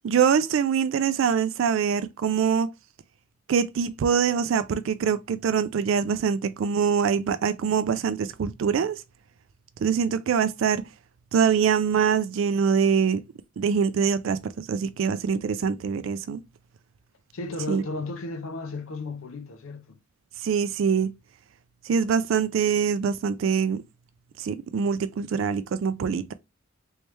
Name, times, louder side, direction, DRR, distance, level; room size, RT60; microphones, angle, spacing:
voice 1, 0.0-2.7 3.5-9.0 9.8-10.8 11.3-13.2 13.6-16.4 17.7-17.8 20.4-21.1 21.9-23.8 24.4-26.3, right 7 dB, 70° right, 0.3 m, -24 dB
voice 2, 17.3-20.0, left 2 dB, 85° left, 0.6 m, -34 dB
3.2 x 3.1 x 3.2 m
head